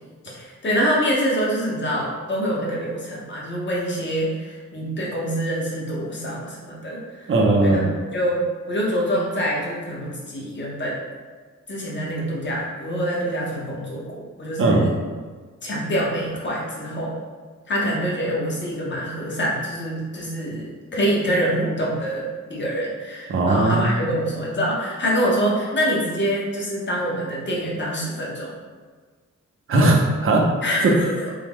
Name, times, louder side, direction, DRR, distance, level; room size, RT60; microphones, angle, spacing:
voice 1, 0.2-7.3 7.6-7.8 8.1-11.0 11.7-14.9 15.6-17.2 17.7-28.5 30.6-31.3, equal, 35° left, -4 dB, 0.8 m, -25 dB
voice 2, 7.3-7.9 14.6-14.9 23.3-23.9 29.7-30.5 30.8-30.9, right 2 dB, 45° right, 0 dB, 0.5 m, -18 dB
3.5 x 2.0 x 3.5 m, 1.4 s
wide cardioid pair, 175°, 30 cm